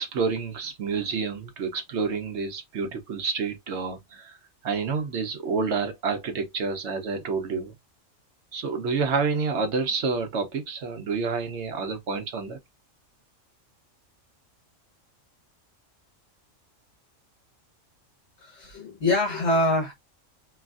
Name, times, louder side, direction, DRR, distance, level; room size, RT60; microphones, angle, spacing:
voice 1, 0.0-4.4 4.6-7.7 8.5-12.6, right 5 dB, 65° right, 0.9 m, -28 dB
voice 2, 18.4-19.9, left 1 dB, 60° left, 1.8 m, -24 dB
3.1 x 2.4 x 2.3 m
omnidirectional pair, 1.3 m